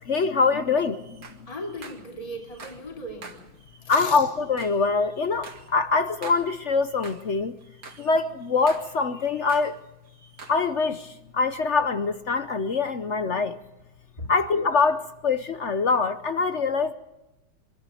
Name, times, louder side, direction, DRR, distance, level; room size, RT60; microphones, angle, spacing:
voice 1, 0.0-1.3 3.9-7.5 8.0-9.8 10.5-13.6 14.3-16.9, left 4 dB, 60° left, 0.7 m, -24 dB
sound 1, 0.9-2.9 3.2-7.3 7.6-9.8 10.1-10.7, right 4 dB, 45° right, 2.3 m, -46 dB
voice 2, 1.5-3.4 3.8-4.3 8.0-8.2 14.2-14.3, left 1 dB, 15° left, 2.6 m, -37 dB
23.5 x 13.5 x 9.2 m
omnidirectional pair, 2.3 m